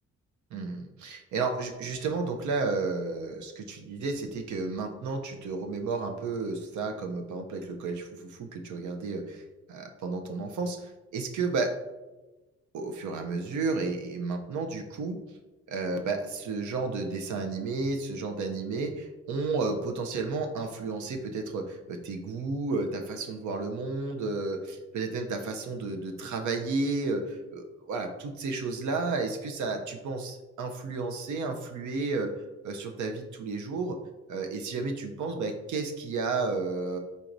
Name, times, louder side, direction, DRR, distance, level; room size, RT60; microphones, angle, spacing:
voice 1, 0.5-9.4 9.7-11.7 12.7-15.2 15.7-32.3 32.6-34.0 34.3-37.0, right 3 dB, 85° right, 4 dB, 0.6 m, -32 dB
4.5 x 4.0 x 2.6 m, 1.1 s
cardioid pair, 120°, 29 cm